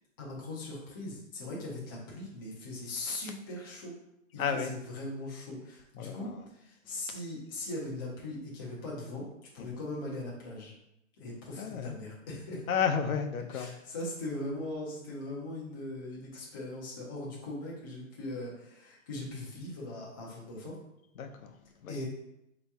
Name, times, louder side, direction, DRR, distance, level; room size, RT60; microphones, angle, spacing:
voice 1, 0.2-4.0 4.3-9.3 9.5-10.7 11.2-12.6 13.5-20.7 21.9-22.1, left 2 dB, 15° left, -5 dB, 0.6 m, -40 dB
voice 2, 4.4-4.7 6.0-6.4 6.9-7.2 9.6-9.7 11.6-12.0 12.7-13.7 21.2-22.0, left 7 dB, 85° left, 6 dB, 0.7 m, -33 dB
4.2 x 3.0 x 3.4 m, 0.82 s
hypercardioid pair, 165°, 41 cm